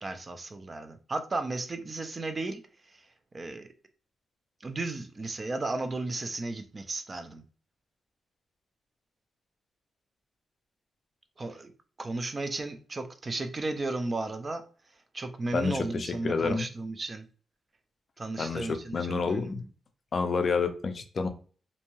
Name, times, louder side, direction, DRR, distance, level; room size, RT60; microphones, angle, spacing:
voice 1, 0.0-2.6 2.9-3.0 3.3-3.7 4.6-7.4 11.4-11.7 12.0-14.6 15.1-17.2 18.2-19.6, right 2 dB, 30° right, 0.4 m, -34 dB
voice 2, 15.5-16.7 18.4-19.6 20.1-21.3, left 4 dB, 45° left, 0.4 m, -29 dB
2.6 x 2.2 x 2.9 m
cardioid pair, 120°, 0 cm